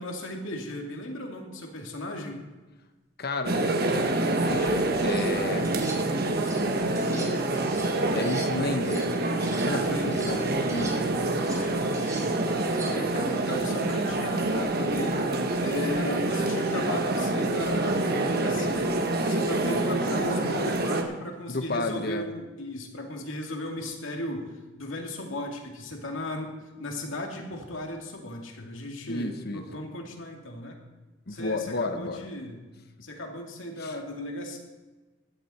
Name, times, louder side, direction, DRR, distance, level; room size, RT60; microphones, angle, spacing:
voice 1, 0.0-2.4 9.7-10.5 11.4-12.3 12.9-15.2 15.6-19.0 19.2-24.5 24.8-26.5 26.8-30.8 31.3-32.6 33.0-34.6, left 1 dB, 90° left, 2 dB, 2.4 m, -36 dB
voice 2, 3.2-5.7 6.8-7.4 8.1-9.2 9.5-11.0 12.0-12.1 19.7-20.0 21.5-22.3 29.1-29.6 31.3-32.3 33.8-34.0, left 2 dB, 55° left, 8 dB, 1.1 m, -33 dB
sound 1, 3.4-21.0, right 2 dB, 55° right, 1.3 m, -26 dB
sound 2, 5.0-5.3 5.6-6.7 7.0-9.7 10.0-13.1, right 2 dB, 15° right, 2.7 m, -43 dB
15.5 x 11.0 x 4.3 m, 1.2 s
head